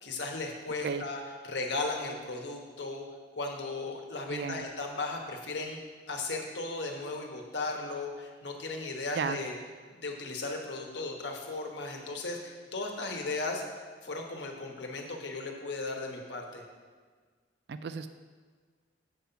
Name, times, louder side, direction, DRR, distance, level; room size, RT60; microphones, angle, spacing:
voice 1, 0.0-3.0 3.4-5.8 6.1-9.5 9.9-13.6 14.0-16.6, left 3 dB, 70° left, 2 dB, 1.2 m, -36 dB
voice 2, 4.3-4.7 9.1-9.4 17.7-18.1, right 5 dB, 65° right, 10 dB, 0.4 m, -33 dB
7.7 x 5.6 x 5.7 m, 1.5 s
head